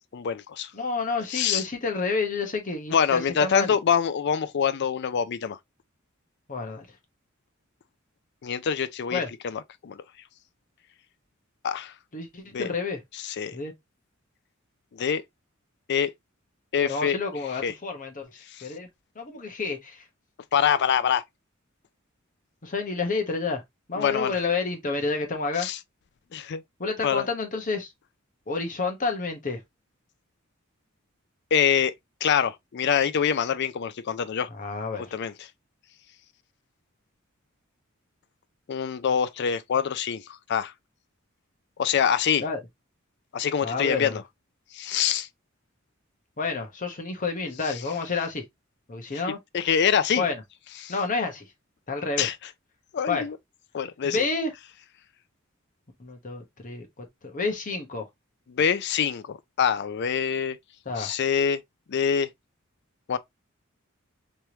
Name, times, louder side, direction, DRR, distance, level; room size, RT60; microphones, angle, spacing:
voice 1, 0.0-0.7 1.3-1.6 2.9-5.6 8.4-10.0 11.6-11.9 12.5-12.7 13.2-13.6 14.9-15.2 15.9-16.1 16.7-17.2 17.6-17.7 20.5-21.2 24.0-24.4 25.6-25.8 26.3-26.6 27.0-27.3 31.5-31.9 32.2-34.5 35.1-35.3 38.7-40.7 41.8-42.4 43.3-44.2 44.7-45.3 49.5-50.2 50.8-50.9 52.2-52.3 52.9-53.4 53.7-54.2 58.5-60.6 61.0-61.6 61.9-62.3 63.1-63.2, left 7 dB, 55° left, 0.4 m, -25 dB
voice 2, 0.7-3.7 6.5-6.9 9.1-9.3 12.1-13.0 13.5-13.7 16.8-18.3 18.6-18.9 19.2-20.0 22.6-23.6 23.9-25.7 26.8-27.9 28.5-29.6 34.5-35.1 42.4-42.6 43.6-44.2 46.4-48.4 48.9-49.4 50.2-50.4 50.9-51.5 51.9-52.3 53.1-53.2 54.0-54.5 56.0-58.1 60.8-61.1, left 4 dB, 40° left, 1.0 m, -29 dB
3.4 x 3.1 x 2.8 m
head